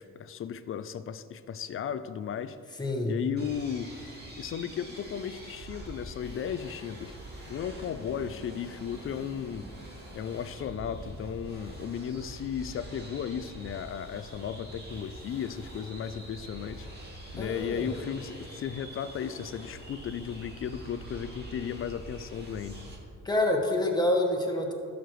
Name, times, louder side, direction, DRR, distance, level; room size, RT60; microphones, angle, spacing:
voice 1, 0.0-2.8 3.1-3.9 4.4-7.2 7.5-9.7 10.1-16.9 17.3-22.8, left 8 dB, 45° left, 13 dB, 0.4 m, -35 dB
voice 2, 2.8-3.2 17.4-17.9 23.2-24.7, left 1 dB, 15° left, 1 dB, 1.4 m, -27 dB
sound 1, 3.4-23.0, right 1 dB, 35° right, 2.2 m, -45 dB
12.5 x 6.5 x 3.1 m, 2.4 s
cardioid pair, 90°, 30 cm